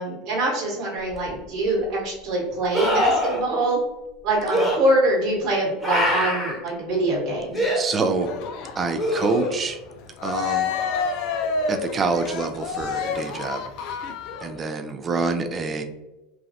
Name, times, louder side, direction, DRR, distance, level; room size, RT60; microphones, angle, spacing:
voice 1, 0.0-3.8 4.2-7.6, right 2 dB, 50° right, -2 dB, 1.2 m, -24 dB
sound 1, 1.1-1.2 2.7-3.4 4.5-4.8 5.8-6.6 7.5-7.8 9.0-9.7 12.8-12.9, equal, 10° left, 1.1 m, -23 dB
voice 2, 7.7-8.3 8.8-9.8 10.2-10.7 11.7-13.6 14.4-15.8, right 4 dB, 30° right, 7 dB, 0.4 m, -26 dB
Cheering, 8.2-14.6, left 5 dB, 60° left, 0.3 m, -29 dB
3.1 x 2.3 x 2.7 m, 1.0 s
hypercardioid pair, 85°, 0 cm